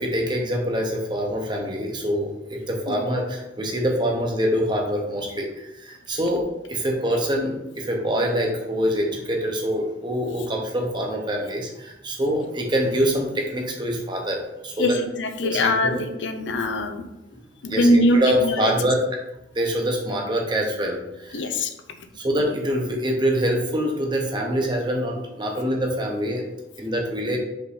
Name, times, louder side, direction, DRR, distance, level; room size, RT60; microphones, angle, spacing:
voice 1, 0.0-15.0 15.4-15.7 17.7-19.0 19.5-21.5 22.1-26.5 26.8-27.4, equal, 25° right, 0 dB, 1.0 m, -25 dB
voice 2, 15.2-17.0 17.6-18.7 21.3-21.7, left 1 dB, 85° left, 7 dB, 0.7 m, -22 dB
5.3 x 3.8 x 5.0 m, 0.92 s
head